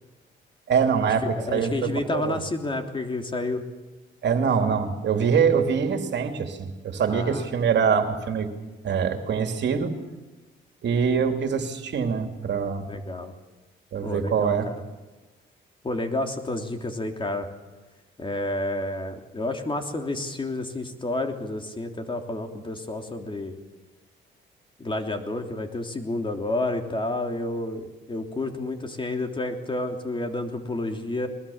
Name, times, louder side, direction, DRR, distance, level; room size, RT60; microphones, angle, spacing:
voice 1, 0.7-2.4 4.2-8.5 8.8-9.9 10.8-12.9 13.9-14.7, right 6 dB, 65° right, 6 dB, 2.8 m, -24 dB
voice 2, 1.3-3.6 7.1-7.5 12.9-13.3 14.0-14.7 15.8-17.5 18.2-23.6 24.8-31.3, left 2 dB, 25° left, 4 dB, 3.2 m, -30 dB
22.0 x 21.0 x 7.3 m, 1.2 s
cardioid pair, 90°, 20 cm